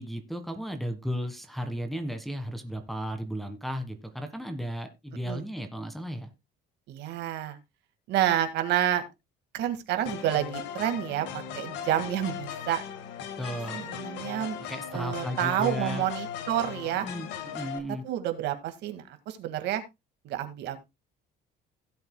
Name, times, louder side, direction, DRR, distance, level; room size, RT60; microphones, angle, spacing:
voice 1, 0.0-6.3 13.4-13.9 14.6-16.1 17.0-18.0, equal, ahead, 5 dB, 1.5 m, -35 dB
voice 2, 6.9-7.6 8.1-9.1 9.5-11.3 11.5-12.8 13.7-14.6 14.9-17.1 18.0-19.8 20.2-20.8, right 11 dB, 70° right, 7 dB, 1.9 m, -29 dB
sound 1, 10.1-17.8, left 8 dB, 80° left, 1.6 m, -38 dB
16.5 x 8.0 x 2.2 m, 0.22 s
cardioid pair, 135°, 19 cm